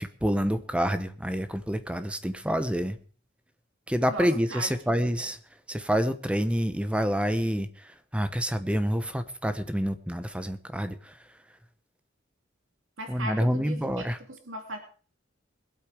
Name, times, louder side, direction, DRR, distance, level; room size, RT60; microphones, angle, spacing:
voice 1, 0.0-3.0 3.9-5.4 5.7-11.2 13.1-14.2, equal, 5° right, 11 dB, 0.9 m, -28 dB
voice 2, 4.1-5.0 13.0-14.8, right 1 dB, 75° right, 4 dB, 2.8 m, -38 dB
21.0 x 8.5 x 5.0 m, 0.41 s
head